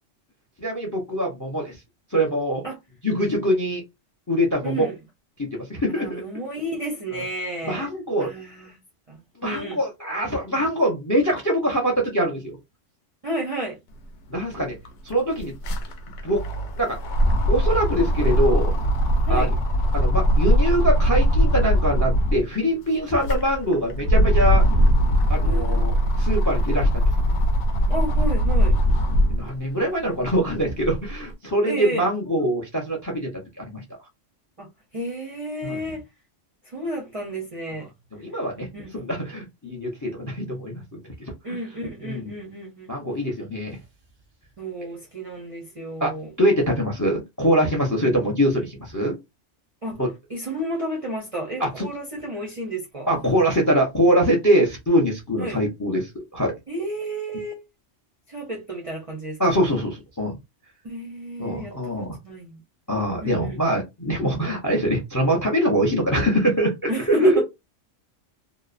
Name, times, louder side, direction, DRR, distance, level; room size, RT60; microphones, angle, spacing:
voice 1, 0.6-1.8 2.1-2.6 3.0-3.8 4.3-4.9 5.4-6.2 7.6-8.3 9.4-12.6 14.3-14.8 15.0-15.5 16.2-16.4 16.8-17.0 17.5-18.7 19.3-19.5 19.9-24.6 25.3-27.0 29.3-33.3 33.6-33.8 35.6-35.8 38.2-38.7 38.9-40.8 41.5-41.6 42.0-42.3 42.9-43.8 46.0-49.2 50.0-50.1 51.6-51.8 53.1-56.5 59.4-60.4 61.4-62.2 62.9-67.4, equal, 25° left, 0.4 m, -23 dB
voice 2, 4.6-5.0 6.0-7.9 8.2-8.8 9.1-9.8 13.2-13.8 19.3-19.5 25.4-25.8 27.9-28.8 31.6-32.1 34.6-34.7 34.9-36.0 36.7-37.9 38.7-39.0 41.4-42.9 44.6-46.3 49.8-50.0 50.3-53.1 55.4-55.6 56.7-57.6 58.3-59.6 60.8-62.6 63.2-63.6 66.9-67.4, right 1 dB, 45° right, 0.4 m, -31 dB
sound 1, 14.3-14.4 14.7-22.5 23.0-29.5 30.0-31.1, equal, 70° left, 0.9 m, -20 dB
2.8 x 2.0 x 2.4 m
omnidirectional pair, 1.3 m